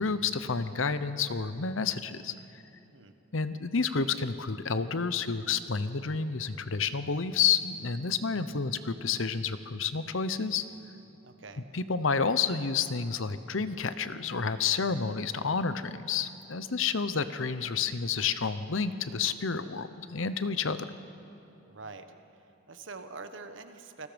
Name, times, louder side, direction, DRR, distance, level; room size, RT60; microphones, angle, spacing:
voice 1, 0.0-2.3 3.3-10.6 11.7-20.8, left 5 dB, 75° left, 12 dB, 0.9 m, -30 dB
voice 2, 11.2-11.7 21.7-22.1 22.7-24.1, right 3 dB, 65° right, 8 dB, 1.3 m, -44 dB
28.5 x 19.5 x 5.2 m, 2.9 s
head